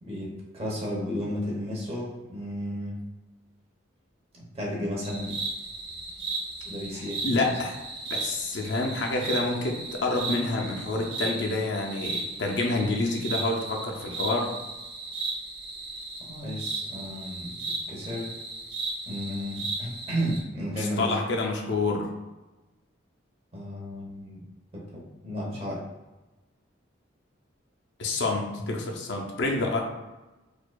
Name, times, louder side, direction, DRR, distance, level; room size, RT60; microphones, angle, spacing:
voice 1, 0.0-3.0 4.3-5.4 6.6-7.4 16.2-17.5 17.9-18.3 19.1-21.2 23.5-24.4 24.7-25.8, equal, 30° right, -3 dB, 0.9 m, -33 dB
sound 1, 5.0-20.4, right 3 dB, 55° right, 0.7 m, -35 dB
voice 2, 6.9-7.8 8.1-14.5 20.8-22.1 28.0-29.8, left 2 dB, 65° left, 1 dB, 0.5 m, -28 dB
4.5 x 2.4 x 2.3 m, 1.1 s
head